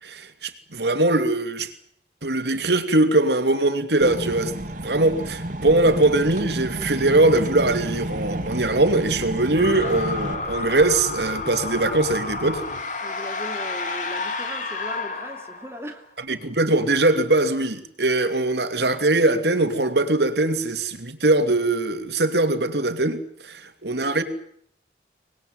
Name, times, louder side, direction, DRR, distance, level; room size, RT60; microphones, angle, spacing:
voice 1, 0.0-1.7 2.2-12.6 16.3-24.2, right 2 dB, 75° right, 2.8 m, -21 dB
sound 1, 4.0-10.3, right 1 dB, 45° right, 2.5 m, -31 dB
sound 2, 5.8-12.8, equal, 85° left, 6.6 m, -40 dB
sound 3, 9.5-16.0, left 3 dB, 45° left, 3.3 m, -31 dB
voice 2, 13.0-16.1, right 1 dB, 15° right, 2.7 m, -38 dB
25.0 x 20.5 x 9.3 m
head